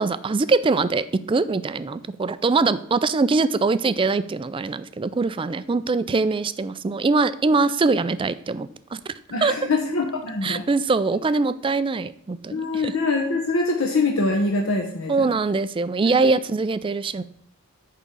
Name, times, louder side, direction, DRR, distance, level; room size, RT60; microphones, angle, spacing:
voice 1, 0.0-9.0 9.4-9.6 10.4-13.0 15.1-17.2, right 3 dB, 25° right, 14 dB, 0.3 m, -23 dB
voice 2, 9.3-10.6 12.5-15.2 16.1-16.2, left 3 dB, 65° left, 1 dB, 1.0 m, -24 dB
9.0 x 3.7 x 6.9 m, 0.68 s
head